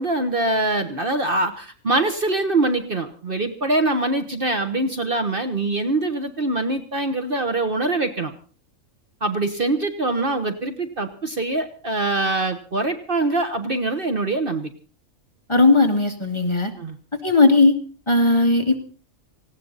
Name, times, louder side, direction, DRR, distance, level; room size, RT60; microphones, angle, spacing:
voice 1, 0.0-8.3 9.2-14.7 16.8-16.9, right 2 dB, 45° right, 7 dB, 1.4 m, -23 dB
voice 2, 15.5-16.7 17.2-17.8 18.1-18.8, left 3 dB, 20° left, 3 dB, 2.2 m, -17 dB
19.0 x 16.5 x 4.0 m, 0.40 s
omnidirectional pair, 1.4 m